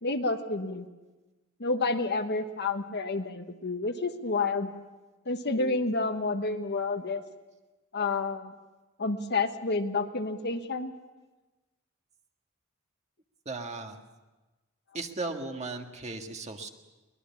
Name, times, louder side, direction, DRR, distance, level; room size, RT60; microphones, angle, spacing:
voice 1, 0.0-0.9 1.6-4.7 5.3-7.2 7.9-8.5 9.0-10.9, left 3 dB, 50° left, 7 dB, 1.3 m, -29 dB
voice 2, 13.4-14.0 14.9-16.7, right 3 dB, 30° right, 4 dB, 1.7 m, -36 dB
23.0 x 20.0 x 7.2 m, 1.2 s
head